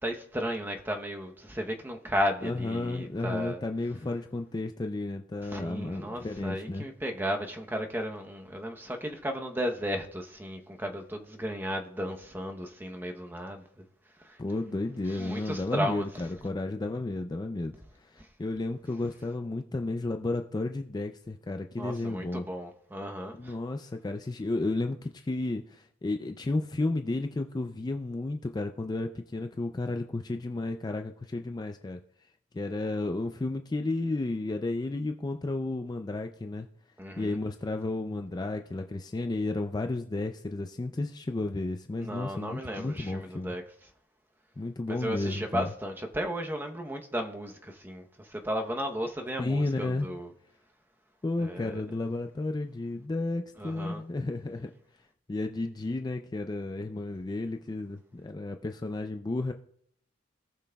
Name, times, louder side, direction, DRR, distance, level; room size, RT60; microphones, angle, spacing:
voice 1, 0.0-3.6 5.4-13.8 14.2-14.4 15.1-16.1 18.2-18.3 21.8-23.6 37.0-37.4 42.0-43.9 44.9-50.3 51.4-51.8 53.6-54.1, equal, 10° right, 0.8 m, -34 dB
voice 2, 2.4-6.9 14.4-17.8 18.1-22.4 23.3-32.0 32.5-36.7 37.2-43.6 44.6-45.7 49.4-50.1 51.2-54.7 55.3-59.5, left 2 dB, 20° left, 0.4 m, -32 dB
18.0 x 6.1 x 2.3 m
head